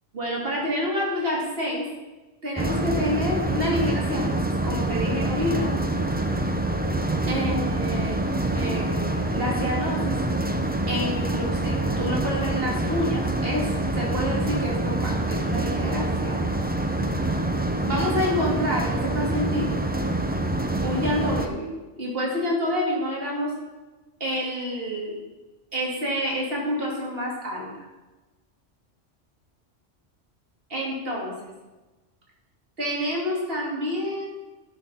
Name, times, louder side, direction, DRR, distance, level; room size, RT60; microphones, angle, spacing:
voice 1, 0.1-1.9 2.4-5.7 7.3-8.2 8.5-10.2 10.9-13.7 13.9-16.5 17.8-19.8 20.8-21.7 22.0-23.5 24.2-25.2 25.7-27.8 30.7-31.5 32.8-34.3, equal, 50° right, -3 dB, 2.8 m, -28 dB
sound 1, 2.6-21.5, right 2 dB, 10° right, 0.5 m, -26 dB
11.0 x 6.9 x 5.6 m, 1.2 s
omnidirectional pair, 1.3 m